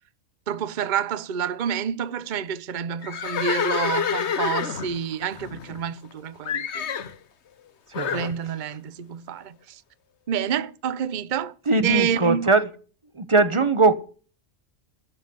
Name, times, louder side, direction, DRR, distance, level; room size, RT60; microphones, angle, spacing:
voice 1, 0.5-7.0 8.1-9.8 10.3-11.5 11.8-12.5, right 8 dB, 45° right, 0.8 m, -28 dB
Livestock farm animals working animals, 3.0-6.1 6.4-7.1 7.9-8.3, left 7 dB, 60° left, 1.2 m, -28 dB
voice 2, 7.9-8.3 11.7-12.7 13.1-13.9, right 3 dB, 25° right, 1.2 m, -20 dB
13.5 x 7.2 x 9.5 m
omnidirectional pair, 1.3 m